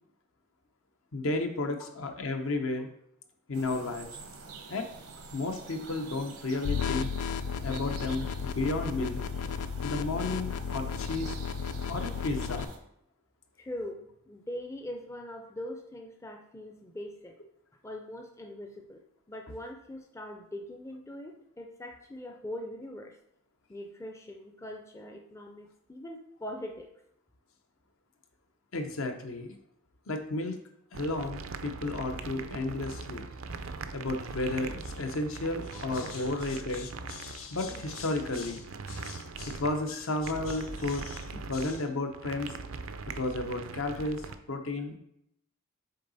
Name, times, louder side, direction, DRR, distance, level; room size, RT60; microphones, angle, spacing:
voice 1, 1.1-2.9 3.5-4.1 4.7-4.9 5.3-7.1 7.6-9.2 9.8-11.4 11.9-12.7 28.7-29.6 30.1-30.6 30.9-33.3 33.9-42.5 43.1-44.2 44.5-45.0, left 2 dB, 65° left, 5 dB, 0.8 m, -33 dB
sound 1, 3.5-12.8, right 4 dB, 80° right, 0.9 m, -47 dB
sound 2, 6.6-12.6, left 6 dB, 90° left, 0.4 m, -34 dB
voice 2, 13.6-17.3 17.8-19.0 19.3-23.2 23.7-26.9 35.7-35.8 36.2-36.6, left 1 dB, 15° left, 2 dB, 0.5 m, -42 dB
sound 3, 30.9-44.3, right 4 dB, 65° right, 0.5 m, -41 dB
6.6 x 3.9 x 4.0 m, 0.75 s
head